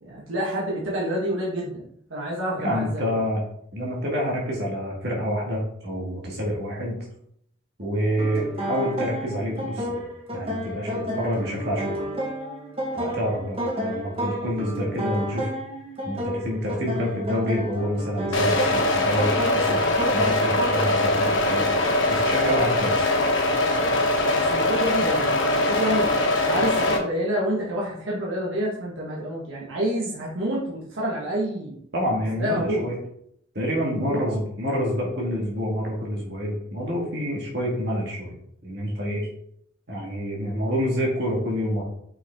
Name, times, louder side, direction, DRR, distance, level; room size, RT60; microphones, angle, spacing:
voice 1, 0.0-3.2 24.3-26.1 26.4-31.8 32.4-32.9 34.0-34.4, right 1 dB, 80° right, -5 dB, 1.5 m, -28 dB
voice 2, 2.6-3.4 3.7-7.0 7.8-10.0 10.3-12.0 12.9-15.5 16.0-19.8 20.1-21.7 22.1-23.1 31.9-32.9 33.5-38.4 38.6-39.3 39.9-41.9, equal, 55° right, -2 dB, 1.8 m, -27 dB
sound 1, 8.2-21.0, equal, 30° right, 1.3 m, -31 dB
sound 2, 18.3-27.0, left 2 dB, 75° left, 1.4 m, -22 dB
5.7 x 5.5 x 3.6 m, 0.70 s
head